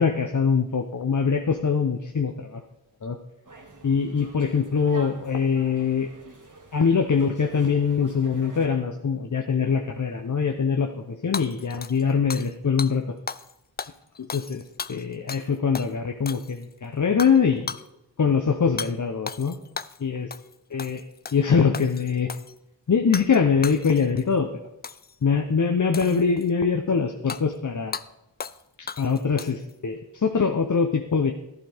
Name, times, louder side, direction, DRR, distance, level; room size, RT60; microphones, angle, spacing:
voice 1, 0.0-2.6 3.0-3.2 3.8-6.1 6.7-13.1 14.3-14.6 14.9-17.8 18.2-19.6 20.0-20.3 20.7-21.0 21.3-22.3 22.9-24.5 25.2-28.0 28.8-31.3, left 6 dB, 40° left, 4 dB, 0.9 m, -23 dB
sound 1, 3.4-8.7, right 3 dB, 40° right, 2.1 m, -47 dB
Hammer / Shatter, 11.3-12.5 12.8-12.9 13.3-13.5 13.8-15.5 15.7-15.9 16.3-16.7 17.2-17.4 17.7-17.9 18.8-18.9 19.3-20.0 20.3-20.5 20.8-21.4 21.7-22.5 23.1-23.4 23.6-24.2 24.8-25.1 25.9-26.5 27.3-27.4 27.9-28.1 28.4-28.6 28.9-29.7, left 6 dB, 25° left, 0.3 m, -35 dB
11.5 x 11.0 x 3.5 m, 0.90 s
cardioid pair, 45°, 48 cm